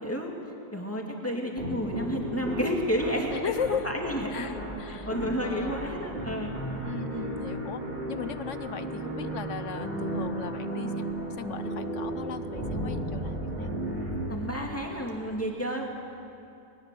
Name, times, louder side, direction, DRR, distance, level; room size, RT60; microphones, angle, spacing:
voice 1, 0.0-0.3 0.7-3.5 3.8-4.6 4.9-6.6 7.1-7.3 14.3-15.9, equal, 10° left, 0 dB, 2.4 m, -31 dB
sound 1, 1.6-15.2, right 1 dB, 35° right, 4.0 m, -34 dB
voice 2, 3.3-3.8 4.3-5.1 5.4-5.8 6.8-11.0 11.4-13.7 14.1-14.3, left 7 dB, 60° left, 12 dB, 1.0 m, -37 dB
21.0 x 19.0 x 7.8 m, 2.6 s
omnidirectional pair, 1.7 m